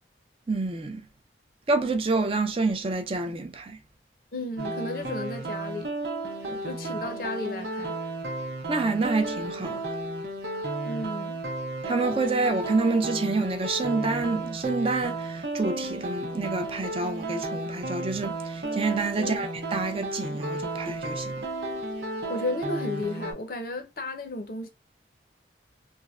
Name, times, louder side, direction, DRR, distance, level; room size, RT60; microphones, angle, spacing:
voice 1, 0.5-1.0 1.7-3.8 6.5-6.6 8.7-9.8 11.9-21.3, right 3 dB, 30° right, 0.4 m, -28 dB
voice 2, 4.3-5.9 6.6-8.0 10.8-11.4 19.2-19.5 22.3-24.7, left 2 dB, 55° left, 0.6 m, -33 dB
sound 1, 4.6-23.3, right 2 dB, 65° right, 0.7 m, -33 dB
3.4 x 2.0 x 2.3 m
head